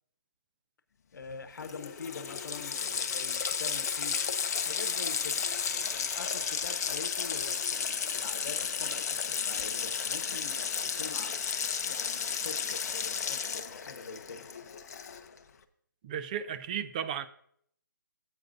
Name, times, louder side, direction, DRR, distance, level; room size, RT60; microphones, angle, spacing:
voice 1, 1.1-4.2 4.6-10.6 11.0-11.6 11.8-14.5, left 4 dB, 70° left, 10 dB, 1.1 m, -45 dB
Water tap faucet, 1.3-1.4 1.6-15.4, left 6 dB, 50° left, 0.7 m, -33 dB
voice 2, 16.0-17.3, right 8 dB, 25° right, 11 dB, 0.5 m, -34 dB
15.5 x 8.0 x 2.6 m, 0.65 s
hypercardioid pair, 155°, 11 cm